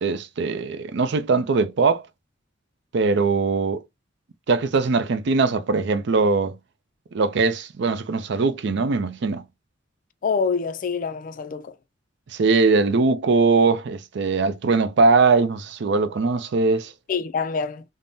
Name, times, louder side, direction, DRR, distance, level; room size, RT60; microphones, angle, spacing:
voice 1, 0.0-2.0 2.9-3.8 4.5-6.6 7.1-9.4 12.3-16.9, right 4 dB, 60° right, 0.4 m, -21 dB
voice 2, 10.2-11.7 17.1-17.8, left 5 dB, 45° left, 0.3 m, -26 dB
3.5 x 2.0 x 2.6 m
head